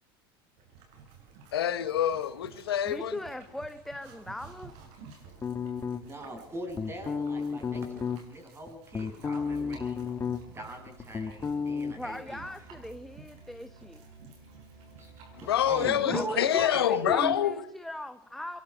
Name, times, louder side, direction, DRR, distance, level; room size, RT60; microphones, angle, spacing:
sound 1, 0.6-17.4, right 5 dB, 60° right, 8.0 m, -53 dB
voice 1, 1.5-3.1 15.4-17.6, left 10 dB, 90° left, 1.0 m, -26 dB
voice 2, 2.8-4.9 11.9-14.0 16.0-18.6, left 1 dB, ahead, 1.1 m, -40 dB
sound 2, 5.4-6.3 6.7-8.2 8.7-10.6 10.9-11.9, left 6 dB, 25° left, 1.2 m, -32 dB
voice 3, 6.0-10.1 10.5-12.4 15.0-17.3, right 1 dB, 20° right, 7.9 m, -39 dB
Musical instrument, 9.3-16.1, right 5 dB, 85° right, 5.7 m, -53 dB
23.5 x 23.0 x 4.9 m
hypercardioid pair, 90°, 12 cm